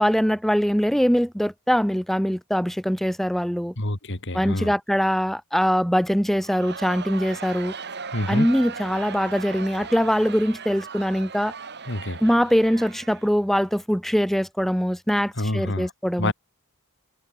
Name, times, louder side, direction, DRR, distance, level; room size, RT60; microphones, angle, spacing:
voice 1, 0.0-3.7 4.3-7.7 8.3-11.5 12.2-16.3, equal, ahead, 2.2 m, -22 dB
voice 2, 3.8-4.7 8.1-8.5 11.9-12.2 15.4-15.9 16.2-16.3, left 1 dB, 55° left, 2.7 m, -27 dB
Crowd, 6.4-13.7, right 5 dB, 50° right, 4.0 m, -38 dB
head